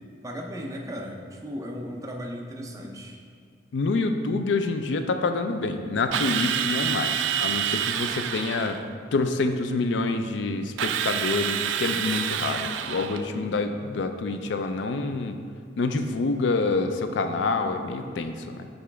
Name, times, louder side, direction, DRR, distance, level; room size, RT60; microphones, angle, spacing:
voice 1, 0.2-3.2, equal, 20° right, 0 dB, 0.5 m, -36 dB
voice 2, 3.7-8.8 9.1-15.4 15.8-18.7, left 3 dB, 80° left, 7 dB, 0.4 m, -27 dB
Drill, 6.1-8.8 10.8-13.3, right 9 dB, 85° right, 0.3 m, -28 dB
6.8 x 4.1 x 3.4 m, 2.2 s
head